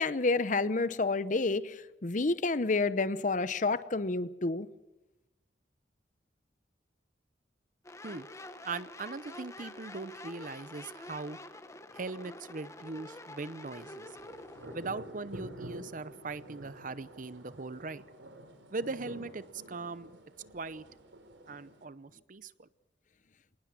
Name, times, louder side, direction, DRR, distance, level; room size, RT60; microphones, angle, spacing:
voice 1, 0.0-4.7, left 3 dB, 40° left, 14 dB, 0.8 m, -29 dB
sound 1, 7.8-14.9, left 2 dB, 15° left, 1.1 m, -47 dB
voice 2, 8.6-11.4 11.9-14.1 14.7-18.0 18.7-20.1 20.5-20.8 21.5-22.7, right 3 dB, 45° right, 16 dB, 0.7 m, -40 dB
sound 2, 13.8-21.8, right 1 dB, 90° right, 3.9 m, -49 dB
26.0 x 19.0 x 7.4 m, 1.0 s
head